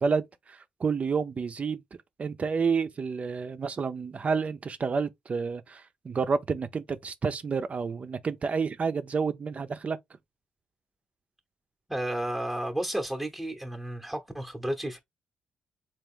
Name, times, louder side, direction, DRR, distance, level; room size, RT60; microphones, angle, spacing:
voice 1, 0.0-1.8 2.2-10.0, right 5 dB, 40° right, 0.5 m, -29 dB
voice 2, 11.9-15.0, right 1 dB, 5° right, 0.8 m, -32 dB
3.3 x 2.4 x 3.6 m
cardioid pair, 70°, 3 cm